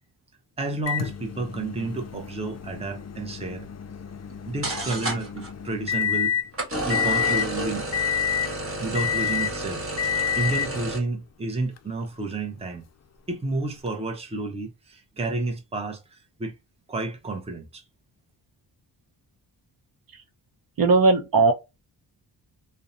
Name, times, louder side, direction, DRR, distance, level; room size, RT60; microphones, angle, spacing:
voice 1, 0.6-3.7 4.5-6.3 6.8-7.9 8.8-9.8 10.4-12.8 13.3-16.6 16.9-17.8, right 3 dB, 15° right, 0.6 m, -31 dB
Microwave oven, 0.9-6.5 6.9-7.5 7.9-8.5 8.9-9.6 10.0-10.8 11.8-11.9 13.9-14.0, left 8 dB, 40° left, 0.4 m, -28 dB
sound 1, 4.3-4.4 4.6-5.5 6.5-11.0, right 1 dB, 30° right, 1.2 m, -31 dB
voice 2, 20.8-21.5, right 3 dB, 55° right, 0.7 m, -18 dB
2.6 x 2.1 x 2.4 m
cardioid pair, 85°, 41 cm